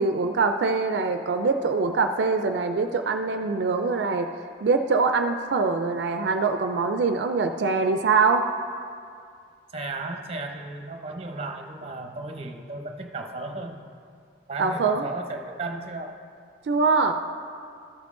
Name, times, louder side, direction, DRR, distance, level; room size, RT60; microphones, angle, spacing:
voice 1, 0.0-4.3 4.6-8.5 14.6-15.1 16.7-17.1, right 4 dB, 75° right, 6 dB, 0.4 m, -23 dB
voice 2, 9.7-13.8 14.5-16.2, right 2 dB, 35° right, 4 dB, 0.7 m, -34 dB
13.5 x 6.0 x 3.7 m, 2.3 s
head